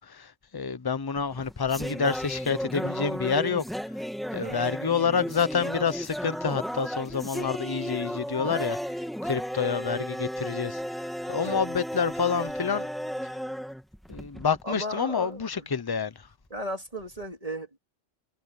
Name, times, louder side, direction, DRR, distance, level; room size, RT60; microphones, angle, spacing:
voice 1, 0.0-3.6 4.3-8.8 9.2-10.8 11.2-12.9 14.1-16.3, left 6 dB, 20° left, 0.7 m, -28 dB
sound 1, 1.2-14.6, equal, ahead, 2.0 m, -34 dB
voice 2, 14.6-15.7 16.5-17.8, right 1 dB, 30° right, 3.6 m, -35 dB
omnidirectional pair, 1.3 m